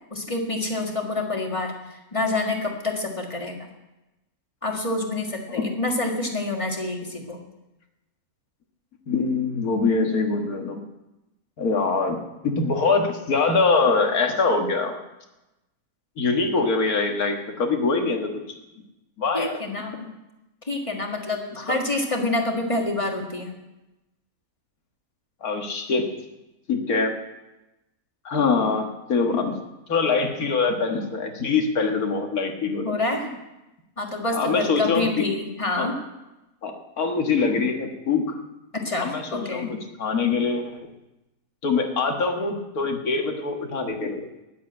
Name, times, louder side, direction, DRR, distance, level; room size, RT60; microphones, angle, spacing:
voice 1, 0.1-3.7 4.6-7.4 19.3-20.1 20.6-23.6 28.4-28.7 32.8-33.4 34.0-35.9 38.7-39.7, left 2 dB, 20° left, 1 dB, 1.8 m, -27 dB
voice 2, 9.1-10.8 11.6-12.2 12.4-15.0 16.2-18.3 19.2-19.6 25.4-26.0 26.7-27.1 28.3-29.6 29.9-32.9 34.3-35.2 35.8-35.9 36.6-38.4 39.0-40.8 41.6-44.3, left 4 dB, 75° left, 3 dB, 2.0 m, -23 dB
10.5 x 8.3 x 8.5 m, 0.98 s
omnidirectional pair, 1.5 m